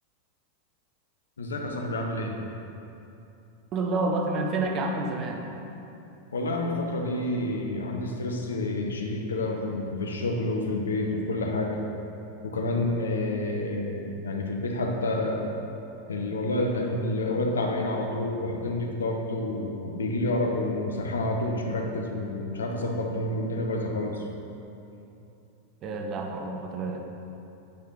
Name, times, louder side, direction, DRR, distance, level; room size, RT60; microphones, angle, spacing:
voice 1, 1.4-2.3 6.3-11.8 12.4-15.5 16.1-24.3, left 2 dB, 70° left, 2 dB, 0.8 m, -29 dB
voice 2, 3.7-5.5 25.8-27.0, right 2 dB, 35° right, 2 dB, 0.9 m, -29 dB
8.8 x 5.7 x 4.0 m, 2.8 s
figure-of-eight pair, 90°, 0 cm